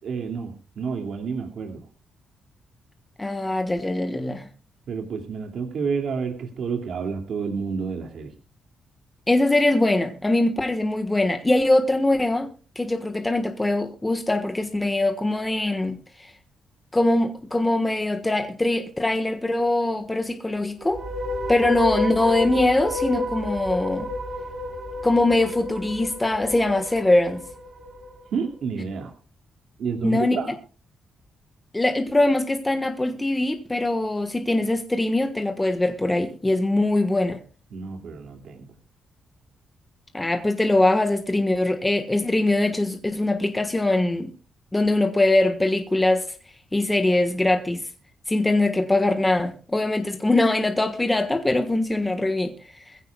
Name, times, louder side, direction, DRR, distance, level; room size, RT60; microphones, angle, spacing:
voice 1, 0.0-1.9 4.9-8.3 28.3-29.1 29.8-30.5 37.7-38.7, right 5 dB, 60° right, 2.4 m, -30 dB
voice 2, 3.2-4.5 9.3-12.5 12.7-16.3 16.9-21.0 21.5-24.1 25.0-27.4 30.0-30.4 31.7-37.4 40.1-44.3 44.7-46.2 46.7-47.9 48.3-53.0, left 2 dB, 10° left, 1.4 m, -22 dB
sound 1, 20.8-28.1, left 2 dB, 35° right, 3.9 m, -30 dB
22.5 x 16.0 x 2.3 m
cardioid pair, 160°, 0 cm